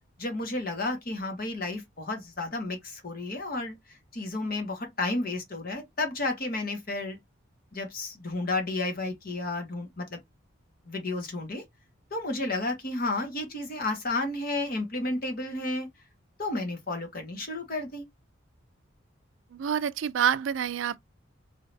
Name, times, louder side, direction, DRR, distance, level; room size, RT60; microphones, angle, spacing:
voice 1, 0.2-3.8 4.1-7.2 7.7-10.2 10.9-11.6 12.1-15.9 16.4-18.1, left 2 dB, 50° left, 1.4 m, -32 dB
voice 2, 19.5-21.0, right 8 dB, 80° right, 0.4 m, -27 dB
3.8 x 3.4 x 2.6 m
head